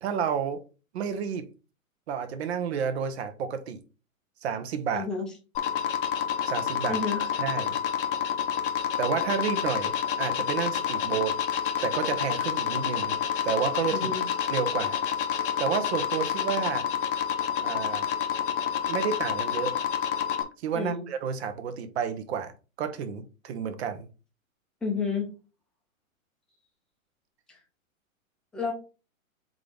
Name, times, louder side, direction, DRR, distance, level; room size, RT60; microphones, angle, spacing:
voice 1, 0.0-0.6 0.9-1.5 2.1-3.8 4.4-5.1 6.5-7.7 9.0-11.4 11.8-13.2 13.4-14.1 14.5-15.0 15.6-16.9 17.6-18.0 18.9-19.7 20.6-22.5 22.8-24.1, right 7 dB, 50° right, 0.9 m, -30 dB
voice 2, 4.9-5.3 6.9-7.2 13.9-14.2 20.7-21.1 24.8-25.3 27.5-27.6 28.5-28.7, left 4 dB, ahead, 0.6 m, -30 dB
sound 1, 5.5-20.4, left 9 dB, 40° left, 0.8 m, -28 dB
3.8 x 3.8 x 3.4 m
hypercardioid pair, 140°, 42 cm